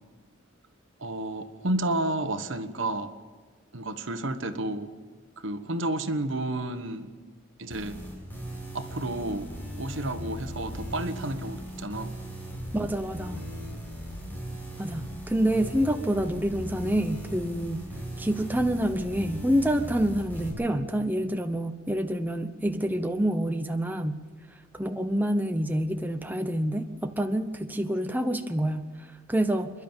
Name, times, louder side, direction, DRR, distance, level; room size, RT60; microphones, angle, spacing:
voice 1, 1.0-3.1 3.7-4.9 5.4-7.1 7.6-8.0 8.7-12.1, right 1 dB, 65° right, 1.3 m, -31 dB
sound 1, 7.7-20.5, equal, 10° left, 6.0 m, -38 dB
voice 2, 12.7-13.4 14.8-17.8 18.2-24.2 24.7-28.9 29.3-29.7, right 1 dB, 10° right, 0.8 m, -27 dB
28.0 x 11.0 x 9.0 m
head